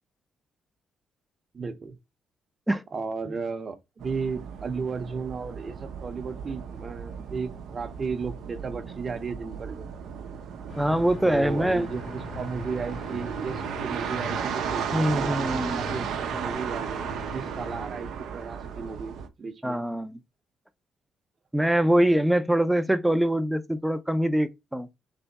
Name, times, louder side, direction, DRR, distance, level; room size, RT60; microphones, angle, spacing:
voice 1, 1.5-1.9 2.9-9.9 11.2-19.8, right 4 dB, 40° right, 0.8 m, -34 dB
sound 1, 4.0-19.3, right 7 dB, 75° right, 0.7 m, -35 dB
sound 2, 10.7-17.9, left 3 dB, 60° left, 2.0 m, -41 dB
voice 2, 10.8-11.9 14.9-15.8 19.6-20.2 21.5-24.9, right 1 dB, 5° right, 0.6 m, -24 dB
3.5 x 3.4 x 4.0 m
cardioid pair, 90°, 0 cm